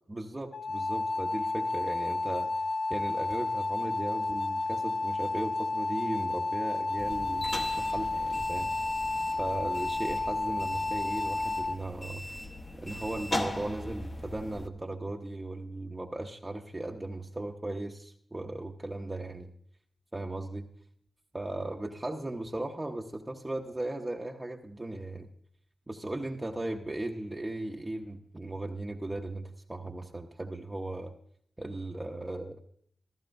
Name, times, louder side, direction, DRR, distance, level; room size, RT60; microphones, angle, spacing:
voice 1, 0.1-2.5 2.9-7.5 7.8-8.7 9.4-12.4 12.8-19.5 20.1-20.7 21.3-25.3 25.9-31.1 31.6-32.6, right 2 dB, 15° right, 0 dB, 0.8 m, -37 dB
sound 1, 0.5-11.8, left 3 dB, 60° left, 0.3 m, -31 dB
sound 2, 7.0-14.7, left 1 dB, 30° left, 0.9 m, -39 dB
15.0 x 14.5 x 2.6 m, 0.67 s
wide cardioid pair, 100°, 0 cm